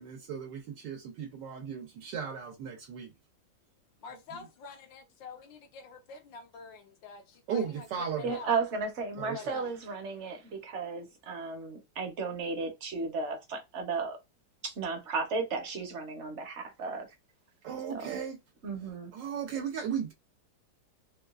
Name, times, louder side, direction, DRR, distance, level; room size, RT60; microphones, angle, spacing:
voice 1, 0.0-3.1 7.5-8.4 9.1-9.6 17.6-18.4 19.1-20.1, right 7 dB, 80° right, 1.3 m, -36 dB
voice 2, 4.0-8.5 9.3-9.7, left 5 dB, 85° left, 1.5 m, -47 dB
voice 3, 8.2-14.2 14.6-17.1 17.9-18.1 18.6-19.1, right 4 dB, 50° right, 1.0 m, -34 dB
3.9 x 2.3 x 2.3 m
omnidirectional pair, 1.9 m